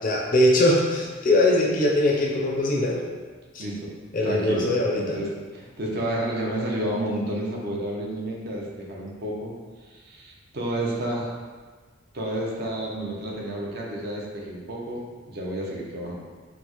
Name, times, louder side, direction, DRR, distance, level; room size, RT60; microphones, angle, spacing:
voice 1, 0.0-3.0 3.5-3.6 4.1-5.2, left 1 dB, 40° left, -2 dB, 0.4 m, -21 dB
voice 2, 3.6-3.9 4.2-5.3 5.5-9.5 9.8-11.3 12.1-16.2, right 1 dB, 50° right, -2 dB, 0.5 m, -30 dB
4.2 x 2.1 x 2.9 m, 1.5 s
head